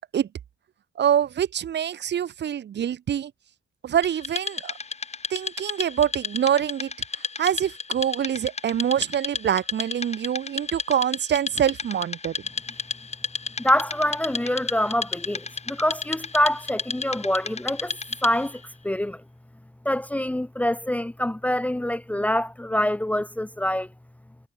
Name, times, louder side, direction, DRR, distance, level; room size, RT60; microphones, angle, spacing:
voice 1, 1.0-3.3 3.8-4.7 5.3-6.9 7.4-12.3, right 9 dB, 60° right, 2.8 m, -25 dB
Wood, 4.0-18.6, left 4 dB, 35° left, 8.0 m, -33 dB
voice 2, 13.6-18.0 18.2-19.2 19.8-23.9, left 1 dB, 5° left, 1.0 m, -25 dB
cardioid pair, 90°, 20 cm